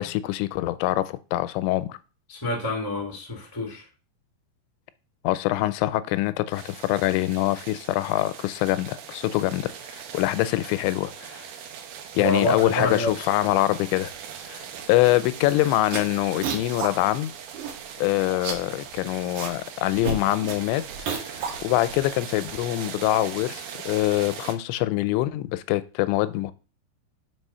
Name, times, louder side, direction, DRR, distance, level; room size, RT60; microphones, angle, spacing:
voice 1, 0.0-2.0 5.2-11.4 12.1-14.1 14.5-17.3 18.0-20.8 21.3-26.5, left 16 dB, 90° left, 2.9 m, -24 dB
voice 2, 2.3-3.8 12.2-13.1, left 1 dB, 30° left, 0.3 m, -27 dB
sound 1, 6.5-24.5, right 8 dB, 80° right, 1.9 m, -40 dB
sound 2, 15.3-15.5 15.8-16.9 17.2-17.3 17.5-18.0 18.3-19.6 19.8-22.0, right 6 dB, 60° right, 2.3 m, -32 dB
6.1 x 5.1 x 5.5 m
omnidirectional pair, 5.1 m